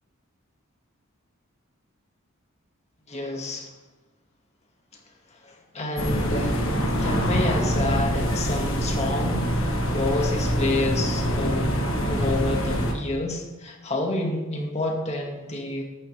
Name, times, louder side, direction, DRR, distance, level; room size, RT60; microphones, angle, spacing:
voice 1, 3.1-3.7 5.4-6.6 7.0-11.8 12.1-15.8, left 2 dB, 30° left, 1 dB, 2.0 m, -29 dB
sound 1, 6.0-12.9, equal, 70° left, 1.8 m, -25 dB
13.5 x 12.0 x 3.5 m, 1.1 s
head